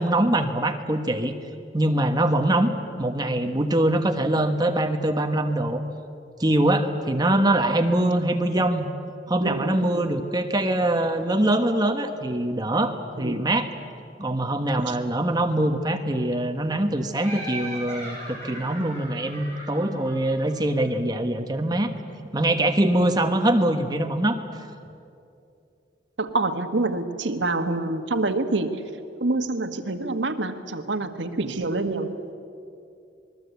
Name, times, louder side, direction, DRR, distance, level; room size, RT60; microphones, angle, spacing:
voice 1, 0.0-1.3 1.7-2.7 3.0-5.8 6.4-8.9 9.3-13.7 14.2-21.9 22.3-24.4, right 1 dB, 20° right, 6 dB, 1.3 m, -23 dB
voice 2, 9.4-10.1 13.2-13.5 14.9-15.0 26.2-28.8 29.2-32.2, right 2 dB, 80° right, 7 dB, 1.5 m, -27 dB
Laughter, 17.2-20.8, right 1 dB, 15° left, 7.3 m, -38 dB
27.0 x 20.5 x 8.3 m, 2.5 s
head